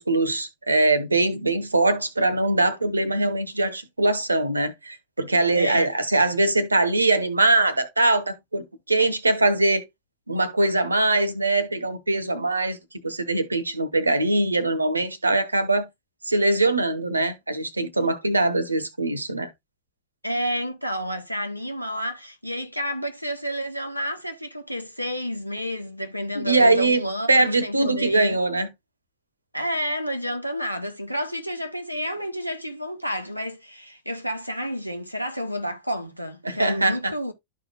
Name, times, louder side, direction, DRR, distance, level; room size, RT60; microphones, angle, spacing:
voice 1, 0.0-9.8 10.3-12.8 13.0-15.9 16.2-19.5 26.3-28.7 36.4-37.1, right 2 dB, 80° right, 0.9 m, -22 dB
voice 2, 5.5-5.9 20.2-28.4 29.5-37.3, equal, 90° left, 1.0 m, -30 dB
12.5 x 4.7 x 2.3 m
figure-of-eight pair, 90°, 0 cm